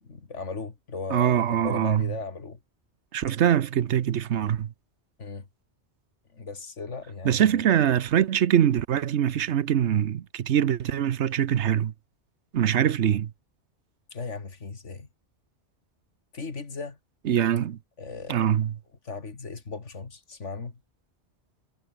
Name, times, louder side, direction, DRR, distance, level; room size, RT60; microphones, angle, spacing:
voice 1, 0.0-2.6 5.2-5.5 6.3-8.0 14.1-15.1 16.3-17.0 18.0-18.5 19.0-20.8, left 4 dB, 85° left, 2.7 m, -37 dB
voice 2, 1.1-2.1 3.1-4.7 7.2-11.9 12.5-13.3 17.2-17.8 18.3-18.7, right 10 dB, 75° right, 1.1 m, -23 dB
omnidirectional pair, 1.2 m